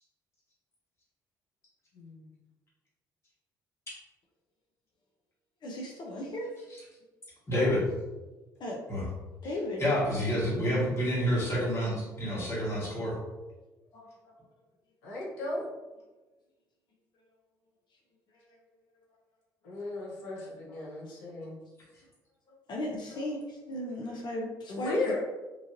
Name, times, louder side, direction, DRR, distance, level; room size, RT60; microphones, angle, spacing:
voice 1, 1.9-2.3 7.5-7.8 15.0-15.7 19.6-21.6 24.7-25.2, left 3 dB, 80° left, -5 dB, 0.8 m, -34 dB
voice 2, 5.6-6.5 8.6-8.8 9.4-9.9 13.9-14.3 18.3-18.4 19.7-19.8 21.1-21.2 22.5-24.9, left 1 dB, 50° left, -2 dB, 0.6 m, -37 dB
voice 3, 7.5-7.8 8.9-9.0 9.8-13.1, equal, 30° left, -7 dB, 1.3 m, -28 dB
3.1 x 2.4 x 2.5 m, 1.2 s
hypercardioid pair, 50°, 10 cm